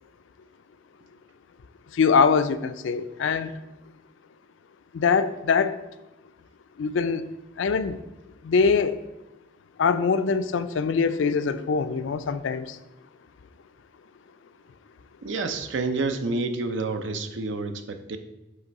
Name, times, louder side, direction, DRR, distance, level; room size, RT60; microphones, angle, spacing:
voice 1, 1.9-3.6 4.9-5.8 6.8-7.3 7.6-8.0 8.4-9.0 9.8-12.8, left 5 dB, 75° left, 11 dB, 0.4 m, -23 dB
voice 2, 15.2-18.2, right 3 dB, 75° right, 8 dB, 0.6 m, -29 dB
7.9 x 3.3 x 4.1 m, 1.0 s
head